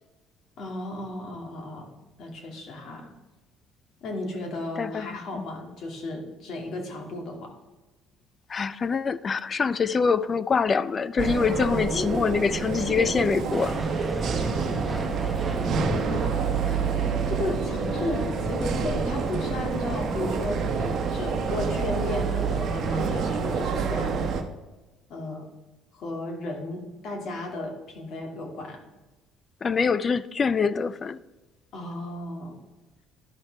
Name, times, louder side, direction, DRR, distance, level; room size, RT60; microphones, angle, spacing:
voice 1, 0.6-1.9 2.2-3.1 4.0-7.5 11.9-12.3 15.7-16.4 17.3-24.3 25.1-25.5 25.9-28.8 31.7-32.6, left 2 dB, 60° left, 2.2 m, -34 dB
voice 2, 8.5-13.7 29.6-31.2, left 5 dB, 35° left, 0.3 m, -24 dB
sound 1, 11.2-24.4, right 6 dB, 60° right, 0.9 m, -28 dB
sound 2, 13.5-24.3, right 1 dB, 5° right, 1.4 m, -35 dB
12.0 x 5.7 x 3.3 m
cardioid pair, 100°, 0 cm